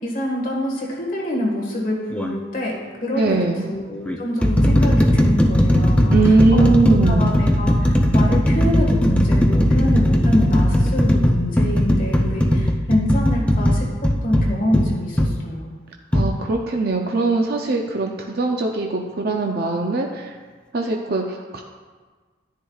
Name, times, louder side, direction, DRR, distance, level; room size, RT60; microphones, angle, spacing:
voice 1, 0.0-6.6 6.9-13.9 14.2-15.7, left 1 dB, 45° left, -2 dB, 1.6 m, -26 dB
sound 1, 2.1-2.4 3.3-3.4 4.1-15.4 16.1-16.3, equal, 5° left, 0.5 m, -17 dB
voice 2, 3.1-3.7 6.1-7.3 16.1-20.4 20.7-21.6, right 3 dB, 50° right, 1 dB, 0.5 m, -21 dB
10.0 x 9.9 x 2.4 m, 1.4 s
head